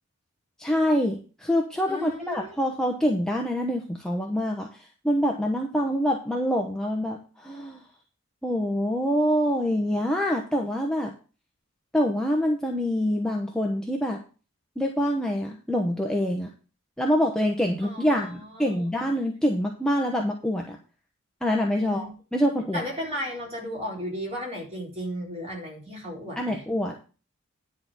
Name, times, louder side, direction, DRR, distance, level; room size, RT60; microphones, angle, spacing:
voice 1, 0.6-7.8 8.4-11.1 11.9-14.2 14.8-16.5 17.0-20.8 21.4-22.8 26.4-27.1, equal, 5° left, 0 dB, 0.9 m, -25 dB
voice 2, 1.9-2.5 17.8-18.9 21.7-22.1 22.7-26.6, equal, 30° right, -3 dB, 4.1 m, -35 dB
10.5 x 4.1 x 7.6 m, 0.36 s
head